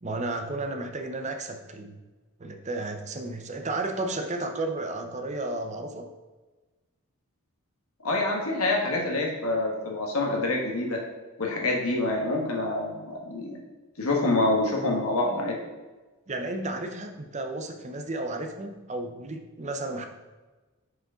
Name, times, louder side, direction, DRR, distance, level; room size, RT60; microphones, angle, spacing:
voice 1, 0.0-2.0 2.4-6.1 16.3-20.0, right 2 dB, 30° right, 6 dB, 0.7 m, -33 dB
voice 2, 8.0-11.0 11.4-13.6 14.0-15.5, left 2 dB, 75° left, 0 dB, 1.7 m, -26 dB
6.4 x 4.8 x 5.0 m, 1.2 s
head